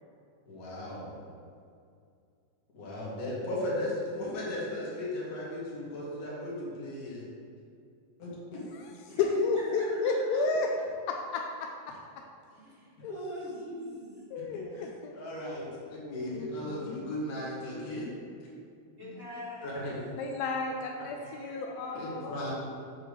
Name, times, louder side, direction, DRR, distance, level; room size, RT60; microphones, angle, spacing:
voice 1, 0.5-1.1 2.7-7.2 8.2-8.3 14.5-14.6 15.1-15.7 16.1-18.1 19.6-19.9 21.9-22.5, left 1 dB, 35° left, -6 dB, 2.0 m, -36 dB
voice 2, 8.7-10.7 11.1-12.2 13.0-13.1 14.3-15.2 16.0-17.1 17.6-17.7 19.0-19.2 20.2-22.3, left 4 dB, 80° left, 2 dB, 1.7 m, -32 dB
voice 3, 9.8-10.4 12.5-14.3 19.0-19.9 21.1-22.2, equal, 35° right, -7 dB, 1.3 m, -44 dB
7.1 x 4.5 x 6.5 m, 2.4 s
omnidirectional pair, 3.5 m